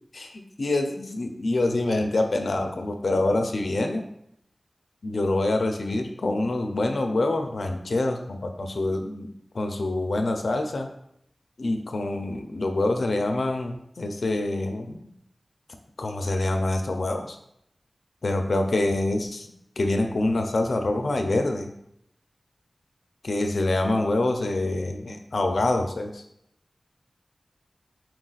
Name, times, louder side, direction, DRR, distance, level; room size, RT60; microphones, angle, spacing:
voice 1, 0.1-4.0 5.0-9.3 9.5-10.9 11.6-15.0 16.0-17.4 18.2-19.5 19.8-21.7 23.2-26.2, left 2 dB, 75° left, 5 dB, 0.4 m, -26 dB
4.5 x 2.4 x 3.9 m, 0.75 s
wide cardioid pair, 75°, 0 cm